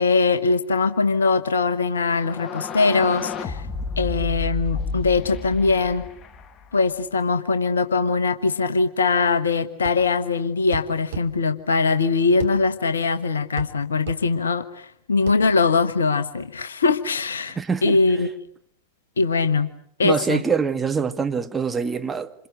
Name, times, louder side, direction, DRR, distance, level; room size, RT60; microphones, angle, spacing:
voice 1, 0.0-3.7 4.0-6.0 6.7-18.3 19.2-19.7 20.0-20.4, left 4 dB, 70° left, 1.3 m, -21 dB
sound 1, 2.1-6.9, left 4 dB, 30° left, 1.4 m, -31 dB
sound 2, 9.8-10.1 10.7-11.3 12.4-12.6 13.6-13.8 14.1-14.2 15.3-15.4, right 8 dB, 55° right, 2.8 m, -33 dB
voice 2, 17.6-18.0 20.0-22.3, right 5 dB, 15° right, 1.9 m, -24 dB
28.0 x 27.5 x 6.5 m
figure-of-eight pair, 90°, 0 cm